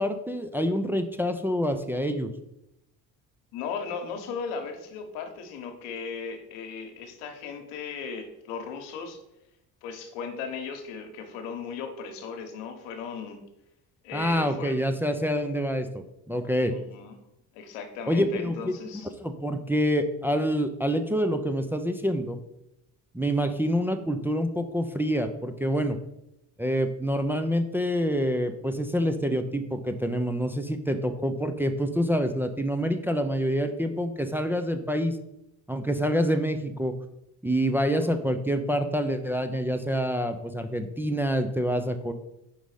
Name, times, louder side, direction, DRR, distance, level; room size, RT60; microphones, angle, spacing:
voice 1, 0.0-2.3 14.1-16.7 18.1-18.7 19.2-22.4 23.1-26.0 26.6-35.2 35.7-36.9 37.4-42.1, equal, 5° right, 6 dB, 0.5 m, -27 dB
voice 2, 3.5-9.2 9.8-13.4 14.0-14.8 16.6-17.2 17.5-19.1 37.8-38.1, left 5 dB, 85° left, 5 dB, 1.1 m, -37 dB
5.2 x 4.0 x 4.8 m, 0.84 s
supercardioid pair, 70°, 41 cm